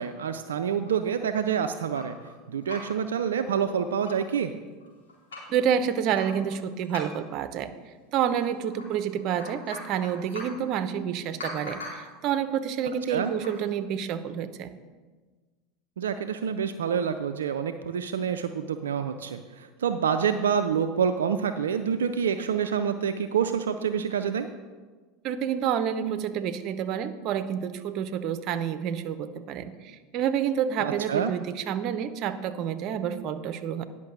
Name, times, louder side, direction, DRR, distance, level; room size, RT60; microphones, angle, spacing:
voice 1, 0.0-2.2 2.5-4.5 13.1-13.3 16.0-24.5 30.8-31.3, right 7 dB, 80° right, 7 dB, 0.4 m, -27 dB
sound 1, 0.9-2.3 2.6-3.1 3.5-3.6 3.8-4.3 4.8-5.6 6.1-7.4 8.4-8.9 9.2-10.6 11.4-12.2 13.3-13.6, left 2 dB, 80° left, 3.7 m, -42 dB
voice 2, 5.5-7.7 8.1-14.7 25.2-33.8, right 8 dB, 50° right, 11 dB, 0.7 m, -29 dB
10.5 x 5.9 x 6.1 m, 1.4 s
hypercardioid pair, 80°, 0 cm